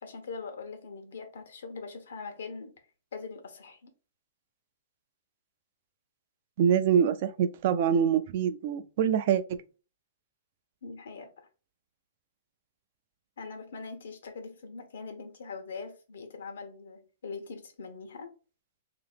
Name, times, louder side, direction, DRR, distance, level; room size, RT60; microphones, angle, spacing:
voice 1, 0.0-2.7 3.1-3.9 10.8-11.5 13.4-18.3, left 4 dB, 90° left, 1.1 m, -42 dB
voice 2, 6.6-9.6, right 8 dB, 45° right, 0.4 m, -25 dB
2.9 x 2.9 x 3.4 m
hypercardioid pair, 165°, 0 cm